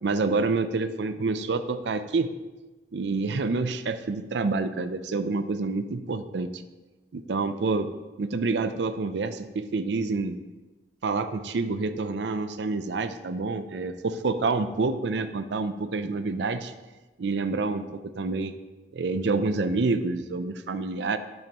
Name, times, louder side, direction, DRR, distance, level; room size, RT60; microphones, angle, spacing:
voice 1, 0.0-2.3 2.9-6.6 7.1-7.9 8.2-10.4 11.0-16.7 17.2-17.9 18.2-18.5 18.9-21.2, right 3 dB, 75° right, 10 dB, 0.5 m, -27 dB
8.9 x 8.8 x 2.9 m, 1.2 s
head